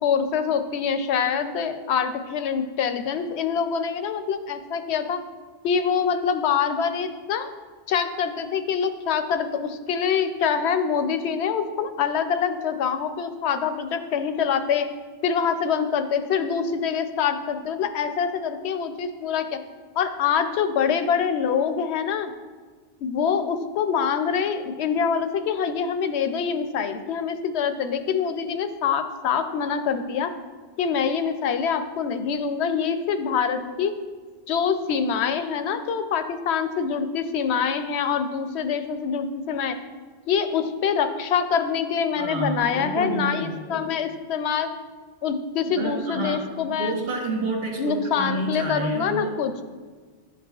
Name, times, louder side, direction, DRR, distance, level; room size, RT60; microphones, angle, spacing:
voice 1, 0.0-5.2 5.6-7.5 7.9-14.9 15.2-19.6 20.0-22.3 23.0-30.3 30.8-33.9 34.5-39.8 40.3-44.7 45.2-46.9 47.8-49.6, left 7 dB, 85° left, 9 dB, 0.8 m, -25 dB
voice 2, 42.1-43.9 45.7-49.4, right 2 dB, 65° right, -1 dB, 1.4 m, -29 dB
11.5 x 4.9 x 2.3 m, 1.5 s
omnidirectional pair, 1.1 m